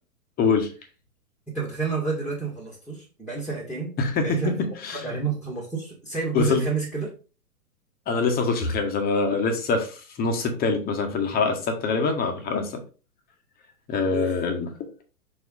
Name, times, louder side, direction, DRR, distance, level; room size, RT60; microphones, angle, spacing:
voice 1, 0.4-0.7 4.0-4.5 4.8-5.2 6.3-6.6 8.1-12.8 13.9-14.7, left 4 dB, 20° left, 5 dB, 1.3 m, -24 dB
voice 2, 1.5-3.9 4.2-4.5 5.0-7.1 14.1-14.3, right 4 dB, ahead, -5 dB, 1.6 m, -29 dB
6.2 x 4.7 x 3.7 m, 0.35 s
figure-of-eight pair, 110°, 46 cm